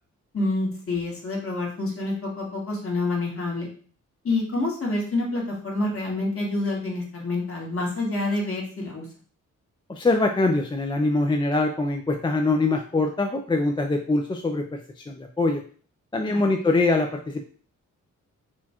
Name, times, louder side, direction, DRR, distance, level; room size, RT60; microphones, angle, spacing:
voice 1, 0.3-3.7 4.2-9.1 16.2-16.5, left 2 dB, 45° left, -2 dB, 1.6 m, -27 dB
voice 2, 9.9-15.6 16.1-17.4, left 2 dB, 15° left, 3 dB, 0.4 m, -23 dB
4.4 x 2.4 x 4.2 m, 0.43 s
wide cardioid pair, 110°, 31 cm